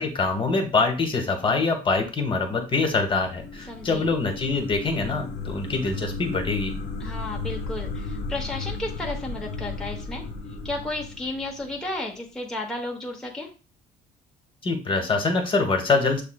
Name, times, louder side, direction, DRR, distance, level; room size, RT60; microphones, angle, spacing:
voice 1, 0.0-6.7 14.6-16.2, left 3 dB, 30° left, 5 dB, 1.0 m, -24 dB
sound 1, 2.7-12.0, left 3 dB, 80° left, 0.8 m, -35 dB
voice 2, 3.7-4.1 7.0-10.2 10.6-13.5, left 2 dB, 5° left, -1 dB, 0.8 m, -33 dB
6.6 x 3.2 x 2.2 m, 0.34 s
cardioid pair, 110°, 17 cm